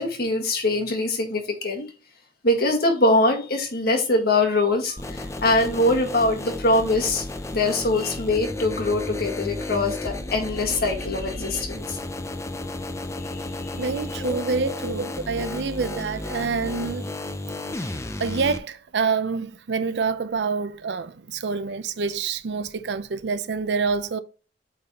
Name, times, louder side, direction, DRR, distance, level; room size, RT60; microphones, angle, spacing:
voice 1, 0.0-1.9 2.4-7.2 7.5-12.0 13.6-13.7 14.1-14.4, left 2 dB, 60° left, 1.6 m, -23 dB
sound 1, 5.0-18.6, left 2 dB, 15° left, 0.5 m, -33 dB
voice 2, 13.8-17.1 17.8-17.9 18.2-24.2, right 5 dB, 70° right, 0.5 m, -27 dB
8.5 x 3.9 x 2.9 m
head